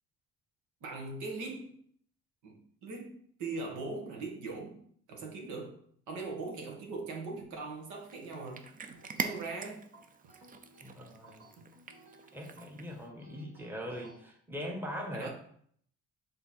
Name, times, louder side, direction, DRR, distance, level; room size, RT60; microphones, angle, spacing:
voice 1, 0.8-1.7 2.4-4.8 5.1-5.8 6.1-8.7 9.2-9.9 15.1-15.3, right 3 dB, 80° right, 0 dB, 1.9 m, -40 dB
Cat, 7.9-13.1, right 5 dB, 30° right, 0.6 m, -43 dB
sound 1, 8.9-14.2, right 2 dB, 55° right, 1.9 m, -58 dB
voice 2, 10.8-11.5 12.3-15.3, equal, 5° right, -1 dB, 1.4 m, -41 dB
7.0 x 3.8 x 4.3 m, 0.63 s
cardioid pair, 120°, 29 cm